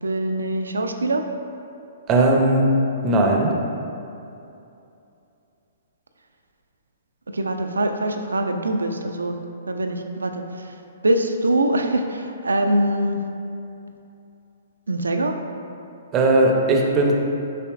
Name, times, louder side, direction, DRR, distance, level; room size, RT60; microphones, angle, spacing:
voice 1, 0.0-1.2 7.3-9.4 9.7-10.7 11.0-13.2 14.9-15.4, right 1 dB, 80° right, 5 dB, 0.3 m, -23 dB
voice 2, 2.1-2.7 3.0-3.5 16.1-17.2, right 2 dB, 25° right, 0 dB, 0.5 m, -18 dB
5.8 x 3.1 x 2.4 m, 2.7 s
figure-of-eight pair, 120°, 0 cm